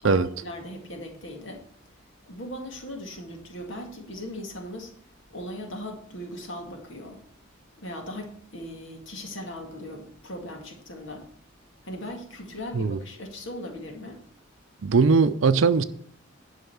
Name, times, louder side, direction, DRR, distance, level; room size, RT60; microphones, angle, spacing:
voice 1, 0.0-1.6 2.3-4.9 5.3-7.2 7.8-11.3 11.8-14.2, left 1 dB, 70° left, 2.2 m, -38 dB
voice 2, 14.8-15.8, right 4 dB, 70° right, 0.5 m, -20 dB
11.5 x 5.7 x 7.0 m
head